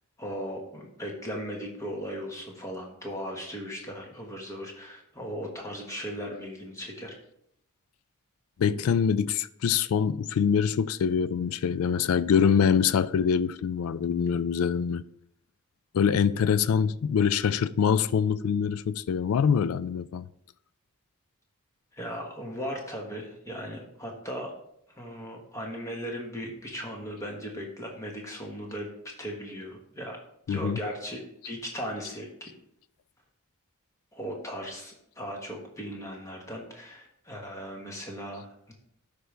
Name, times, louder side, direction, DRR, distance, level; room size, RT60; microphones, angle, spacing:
voice 1, 0.2-7.1 21.9-24.5 25.0-28.9 29.2-30.2 30.5-31.2 31.4-32.5 34.1-38.7, equal, 15° left, 1.4 m, -37 dB
voice 2, 8.6-15.0 15.9-20.3 30.5-30.9, left 7 dB, 70° left, 0.3 m, -24 dB
12.5 x 5.1 x 3.4 m
head